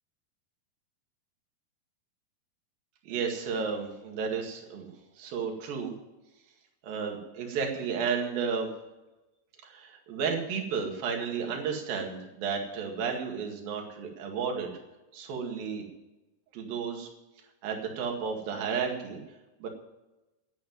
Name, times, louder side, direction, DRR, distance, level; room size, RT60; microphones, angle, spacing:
voice 1, 3.1-5.9 6.8-8.7 9.6-14.7 15.1-15.9 16.5-17.1 17.6-19.2 19.6-19.7, right 6 dB, 65° right, 1 dB, 3.7 m, -32 dB
11.5 x 8.6 x 9.3 m, 1.0 s
omnidirectional pair, 4.7 m